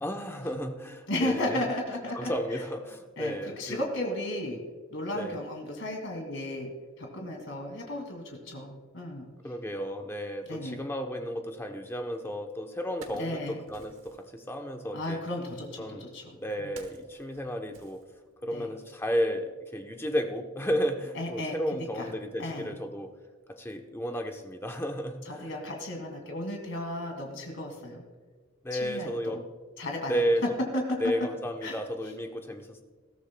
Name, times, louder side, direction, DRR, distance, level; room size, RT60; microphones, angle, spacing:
voice 1, 0.0-1.6 2.1-3.8 5.1-5.4 9.4-15.2 15.8-18.0 18.4-23.1 23.5-25.5 28.6-29.4 30.1-30.6 31.0-32.8, equal, 10° left, 4 dB, 0.8 m, -33 dB
voice 2, 1.1-2.3 3.2-4.6 4.9-6.7 7.0-9.3 10.5-10.8 13.2-13.6 14.9-16.7 18.5-18.7 21.1-22.1 22.4-22.7 25.3-28.0 28.7-29.4 29.8-30.2 30.7-31.1 31.6-31.7, left 1 dB, 60° left, 2 dB, 2.4 m, -34 dB
Wood, 12.2-12.3 12.7-14.3 15.3-18.6 18.9-19.1, right 3 dB, 65° right, 1.3 m, -52 dB
20.5 x 13.5 x 2.2 m, 1.5 s
head